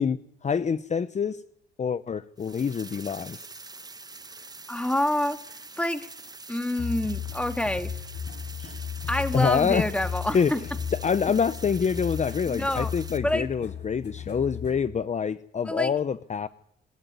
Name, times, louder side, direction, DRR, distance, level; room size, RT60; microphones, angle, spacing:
voice 1, 0.0-1.4 1.8-3.4 9.3-9.9 10.3-10.5 11.0-16.5, left 6 dB, 35° left, 14 dB, 0.9 m, -26 dB
sound 1, 2.4-13.2, right 3 dB, 20° right, 1.4 m, -44 dB
voice 2, 4.7-5.4 5.8-6.1 6.5-7.9 8.6-8.7 9.1-10.6 12.5-12.9 13.2-13.5 15.6-15.9, left 1 dB, 5° left, 9 dB, 2.2 m, -27 dB
sound 2, 6.8-14.8, left 8 dB, 60° left, 6.8 m, -35 dB
26.5 x 12.5 x 9.5 m, 0.71 s
cardioid pair, 90°, 20 cm